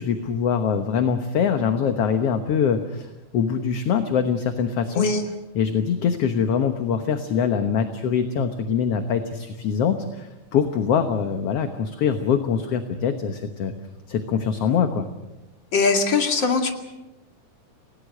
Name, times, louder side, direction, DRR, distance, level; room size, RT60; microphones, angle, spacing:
voice 1, 0.0-5.1 5.6-13.7 14.1-15.1, left 7 dB, 60° left, 7 dB, 2.0 m, -23 dB
voice 2, 4.9-5.3 15.7-16.7, left 4 dB, 40° left, 4 dB, 2.8 m, -21 dB
29.5 x 18.5 x 6.6 m, 0.96 s
omnidirectional pair, 3.4 m